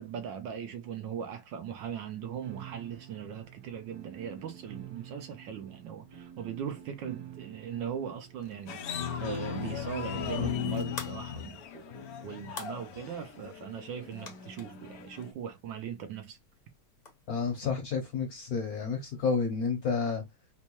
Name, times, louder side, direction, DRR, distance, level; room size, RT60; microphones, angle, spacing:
voice 1, 0.0-16.4, right 8 dB, 75° right, 1.2 m, -39 dB
sound 1, 2.4-10.8, right 10 dB, 55° right, 1.7 m, -49 dB
sound 2, 8.4-17.5, left 4 dB, 45° left, 0.5 m, -51 dB
sound 3, 8.7-15.3, left 8 dB, 90° left, 0.7 m, -37 dB
voice 2, 17.3-20.2, left 5 dB, 60° left, 1.0 m, -30 dB
4.4 x 2.2 x 2.8 m
omnidirectional pair, 2.3 m